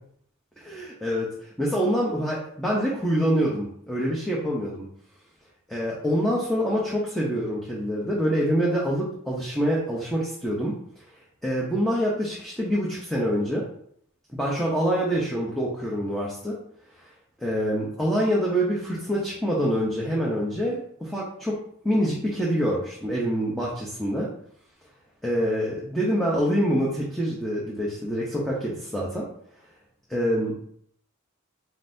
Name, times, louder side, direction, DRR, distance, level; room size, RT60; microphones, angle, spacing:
voice 1, 0.7-1.3 1.6-4.8 5.7-10.7 11.4-13.6 14.3-16.6 17.4-21.6 21.8-24.3 25.2-29.3 30.1-30.6, equal, ahead, -5 dB, 0.7 m, -25 dB
4.2 x 3.9 x 2.6 m, 0.65 s
head